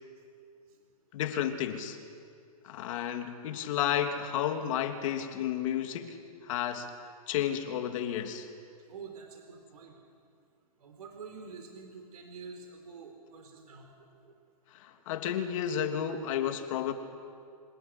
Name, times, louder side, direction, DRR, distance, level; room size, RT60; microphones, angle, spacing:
voice 1, 1.1-2.0 2.6-6.9 7.3-8.5 14.7-16.9, left 9 dB, 55° left, 6 dB, 2.8 m, -32 dB
voice 2, 8.9-10.0 10.8-14.4, right 5 dB, 70° right, 3 dB, 4.3 m, -47 dB
27.0 x 19.0 x 9.8 m, 2.3 s
hypercardioid pair, 130°, 20 cm